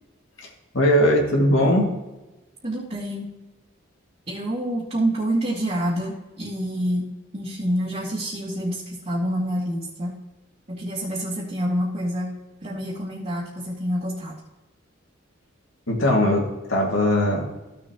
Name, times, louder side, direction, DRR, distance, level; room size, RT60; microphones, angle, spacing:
voice 1, 0.7-1.9 15.9-16.4 16.7-17.5, left 1 dB, 85° left, -2 dB, 2.2 m, -19 dB
voice 2, 2.6-3.3 4.3-10.1 10.7-12.3 12.6-14.4, equal, 35° right, -7 dB, 2.0 m, -27 dB
14.5 x 7.0 x 2.9 m, 1.1 s
head